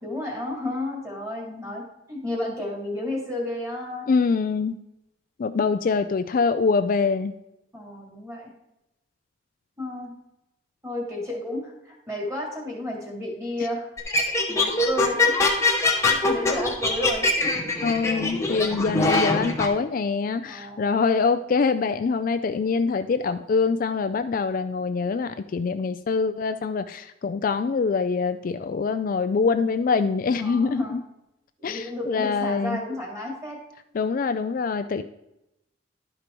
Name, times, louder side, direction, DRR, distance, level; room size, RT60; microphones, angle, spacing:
voice 1, 0.0-4.1 7.7-8.5 9.8-10.1 10.8-13.9 14.5-15.3 16.0-17.3 20.5-21.0 30.4-31.0 31.6-33.6, left 1 dB, 15° right, -1 dB, 2.5 m, -32 dB
voice 2, 4.1-4.8 5.4-7.4 17.8-31.0 31.6-32.8 33.9-35.0, left 4 dB, 45° left, 10 dB, 0.3 m, -24 dB
sound 1, 14.0-19.7, left 2 dB, 15° left, 1.0 m, -23 dB
11.5 x 5.2 x 4.4 m, 0.88 s
head